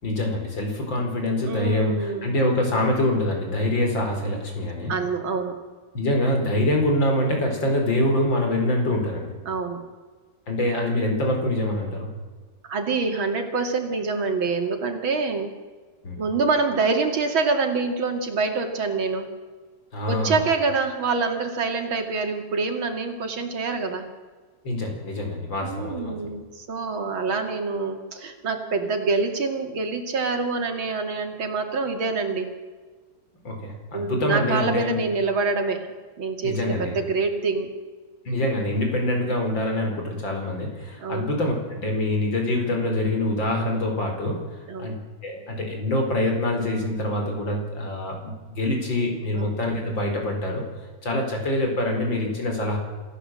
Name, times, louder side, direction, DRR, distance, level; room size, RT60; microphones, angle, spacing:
voice 1, 0.0-4.9 5.9-9.3 10.5-12.1 16.0-16.2 19.9-20.4 24.6-26.2 33.4-35.0 36.4-36.9 38.3-44.4 44.8-45.0 45.2-50.6 51.0-52.8, left 1 dB, 70° left, 2 dB, 5.4 m, -25 dB
voice 2, 1.5-2.4 4.9-5.6 9.5-9.8 12.6-15.5 16.2-19.3 20.1-24.1 25.6-32.5 33.9-35.9 36.2-37.7 41.0-41.3 44.7-45.0 49.4-49.6, right 4 dB, 85° right, 5 dB, 3.3 m, -26 dB
27.0 x 15.0 x 7.7 m, 1.4 s
omnidirectional pair, 2.1 m